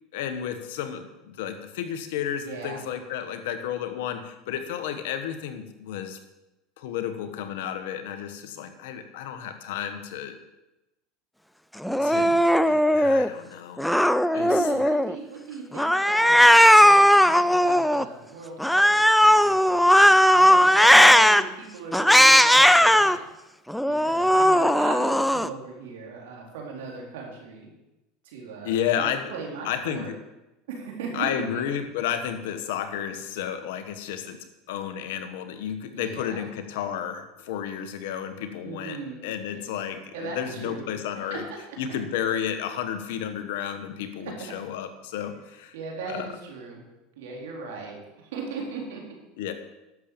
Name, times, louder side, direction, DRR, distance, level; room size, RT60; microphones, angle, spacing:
voice 1, 0.1-6.2 6.8-10.4 12.0-12.4 12.7-13.9 14.3-14.9 28.6-29.3 29.6-30.1 31.1-34.4 34.7-41.4 41.8-45.7 46.1-46.3 49.4-49.5, left 9 dB, 80° left, 8 dB, 1.5 m, -32 dB
voice 2, 2.4-2.8 11.9-12.5 14.3-23.2 23.9-27.7 28.2-30.1 30.7-31.3 31.5-31.6 35.9-36.4 38.6-39.2 39.5-39.6 40.1-40.8 41.3-41.4 44.2-44.5 45.7-46.8 47.2-49.0, right 4 dB, 85° right, -1 dB, 3.8 m, -38 dB
Cat, 11.8-13.3 13.8-15.1 15.8-18.0 18.6-21.4 21.9-23.2 23.7-25.5, equal, ahead, 0.5 m, -17 dB
11.5 x 7.4 x 6.9 m, 0.97 s
supercardioid pair, 110°, 0 cm